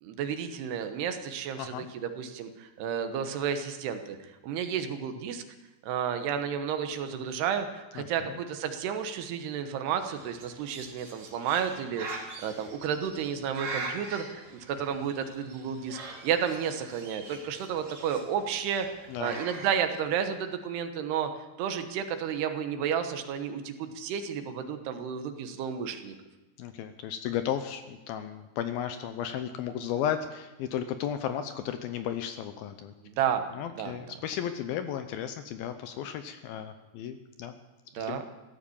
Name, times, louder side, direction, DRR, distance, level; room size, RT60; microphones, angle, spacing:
voice 1, 0.0-4.2 4.4-5.4 5.8-21.3 21.6-26.2 33.0-33.4 33.8-33.9 37.9-38.2, right 8 dB, 75° right, 8 dB, 3.1 m, -32 dB
voice 2, 8.0-8.4 19.1-19.4 26.6-32.9 33.5-37.5 38.0-38.2, left 9 dB, 80° left, 9 dB, 2.3 m, -34 dB
Bird, 9.9-19.8, right 3 dB, 45° right, 3.8 m, -43 dB
16.0 x 12.5 x 7.1 m, 1.1 s
omnidirectional pair, 4.8 m